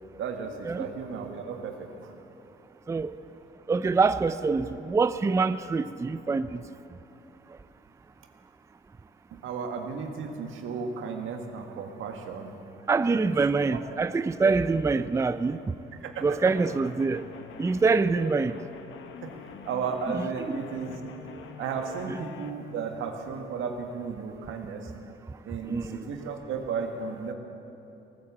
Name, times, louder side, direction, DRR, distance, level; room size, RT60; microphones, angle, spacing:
voice 1, 0.2-2.1 9.3-12.5 13.1-13.3 13.7-13.8 14.4-14.5 16.0-16.6 18.2-18.4 19.2-19.3 19.7-21.0 21.6-24.9 25.4-27.3, right 5 dB, 85° right, 4 dB, 1.6 m, -34 dB
voice 2, 3.7-6.6 7.5-7.6 12.9-15.7 16.2-17.2 17.6-18.6 20.5-20.6 25.3-25.4 25.6-26.1, right 4 dB, 15° right, 14 dB, 0.4 m, -25 dB
sound 1, 16.4-22.5, left 7 dB, 80° left, 1.1 m, -45 dB
19.0 x 9.2 x 7.4 m, 2.9 s
cardioid pair, 90°, 20 cm